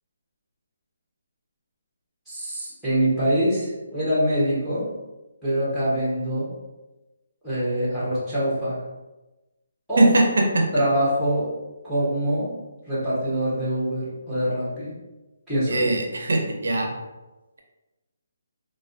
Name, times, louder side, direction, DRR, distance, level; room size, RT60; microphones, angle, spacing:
voice 1, 2.3-4.9 5.4-6.5 7.4-8.8 9.9-10.1 10.7-11.5 11.8-12.5 12.9-14.9 15.5-16.0, equal, ahead, -10 dB, 0.6 m, -24 dB
voice 2, 10.0-10.7 15.7-16.9, right 2 dB, 65° right, 1 dB, 0.4 m, -20 dB
2.4 x 2.1 x 2.5 m, 1.1 s
hypercardioid pair, 180°, 0 cm